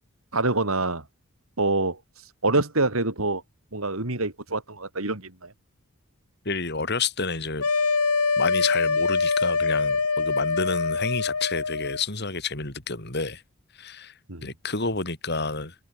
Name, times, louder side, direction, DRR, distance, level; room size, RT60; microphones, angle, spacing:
voice 1, 0.3-1.0 1.6-2.0 2.4-3.4 3.7-5.5 14.3-14.5, right 2 dB, 70° right, 3.1 m, -25 dB
voice 2, 6.4-7.7 8.4-13.4 13.7-15.8, left 4 dB, 50° left, 4.0 m, -29 dB
sound 1, 7.6-12.0, left 4 dB, 85° left, 2.0 m, -24 dB
head